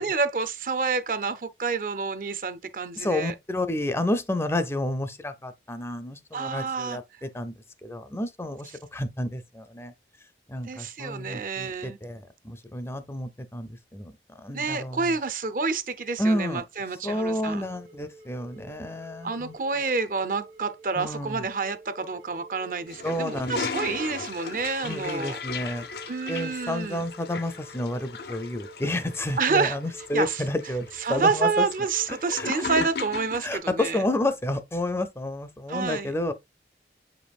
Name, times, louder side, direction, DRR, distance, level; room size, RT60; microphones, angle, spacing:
voice 1, 0.0-3.3 6.3-7.0 10.6-12.0 14.5-17.6 19.2-25.4 26.1-27.0 29.4-29.8 30.1-30.4 31.0-34.0 35.7-36.1, right 4 dB, 50° right, 0.6 m, -28 dB
voice 2, 3.0-7.5 7.8-9.9 10.5-15.1 16.2-16.6 17.0-19.5 21.0-21.5 23.0-23.7 24.8-25.9 26.3-31.7 32.3-32.6 33.4-36.3, left 1 dB, 15° left, 0.5 m, -30 dB
sound 1, 17.2-32.8, right 3 dB, 70° right, 1.5 m, -49 dB
Toilet flush, 22.9-33.5, left 5 dB, 65° left, 0.6 m, -37 dB
7.7 x 5.2 x 2.4 m
head